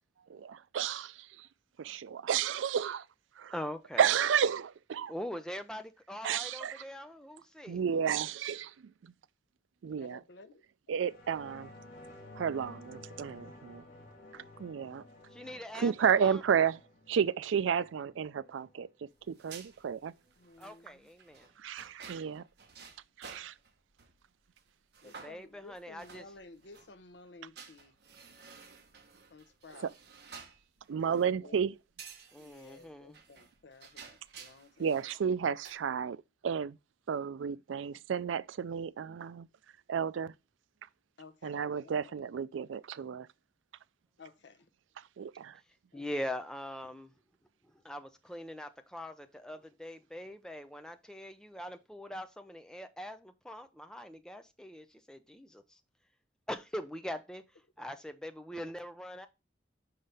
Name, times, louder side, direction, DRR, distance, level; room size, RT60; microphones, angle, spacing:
voice 1, 0.3-1.5 1.8-3.0 3.4-3.5 4.0-5.1 6.2-6.8 7.7-8.7 9.0-9.1 9.8-10.2 10.9-11.7 12.4-13.8 14.3-15.0 15.7-16.8 17.1-18.9 19.3-20.1 21.6-22.4 23.2-23.5 30.9-31.7 34.8-36.2 36.4-36.8 37.1-39.5 39.9-40.3 41.4-43.3 45.2-45.6, right 7 dB, 85° right, 0.4 m, -32 dB
voice 2, 3.5-4.1 5.1-7.8 15.3-16.4 20.6-21.5 25.2-26.2 32.3-33.2 45.9-47.1 47.8-55.8 56.5-57.4 57.8-59.3, equal, 5° left, 0.6 m, -42 dB
voice 3, 10.0-10.7 20.4-21.1 25.0-27.9 29.3-29.9 31.0-31.1 31.4-31.6 32.4-35.1 41.2-42.1 44.2-44.7 45.9-46.1, left 3 dB, 70° left, 0.7 m, -54 dB
sound 1, 11.0-20.0 20.3-20.4, left 1 dB, 50° left, 2.7 m, -53 dB
sound 2, 19.2-24.2 24.6-24.7 24.9-26.9 27.6-31.4 32.0-35.1 35.4-35.7, right 6 dB, 55° right, 1.1 m, -52 dB
5.7 x 5.4 x 3.4 m
head